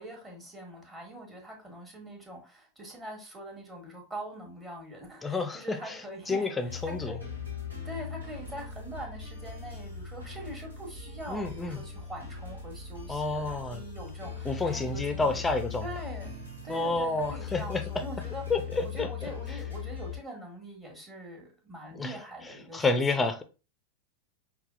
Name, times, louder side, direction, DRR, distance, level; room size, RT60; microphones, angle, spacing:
voice 1, 0.0-7.3 7.8-15.5 15.8-16.4 16.6-18.4 18.8-23.3, right 1 dB, 15° right, 1.4 m, -43 dB
voice 2, 5.2-6.0 6.3-7.2 11.3-11.8 13.1-13.8 14.4-15.9 16.7-17.8 18.5-19.1 22.0-22.2 22.7-23.4, left 3 dB, 10° left, 0.6 m, -29 dB
sound 1, 6.7-20.2, left 6 dB, 80° right, 1.4 m, -40 dB
5.5 x 2.3 x 2.5 m
figure-of-eight pair, 90°, 0 cm